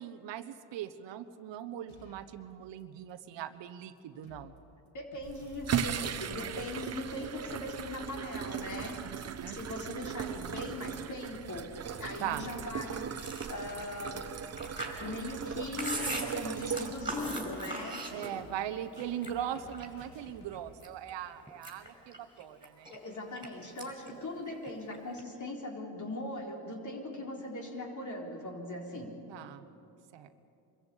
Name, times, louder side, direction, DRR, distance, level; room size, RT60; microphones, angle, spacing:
voice 1, 0.0-4.5 9.4-9.6 12.2-12.4 18.1-22.9 29.3-29.6 30.1-30.3, right 10 dB, 60° right, 11 dB, 1.1 m, -40 dB
sound 1, 1.9-2.4 2.8-2.9 3.1-3.2 3.7-3.8 4.0-4.6 4.9-20.7, left 3 dB, 65° left, 2.7 m, -56 dB
voice 2, 4.9-11.7 12.0-14.3 15.0-18.0 22.9-29.2, left 1 dB, 35° left, 1 dB, 3.9 m, -40 dB
sound 2, 5.2-17.6, right 8 dB, 30° right, 0.9 m, -38 dB
Chewing mastication, 13.1-18.6 19.0-20.0 20.5-21.1 21.5-23.5 23.8-24.1 24.4-25.2, right 2 dB, 10° right, 5.2 m, -40 dB
24.0 x 14.5 x 8.4 m, 2.8 s
supercardioid pair, 85°, 49 cm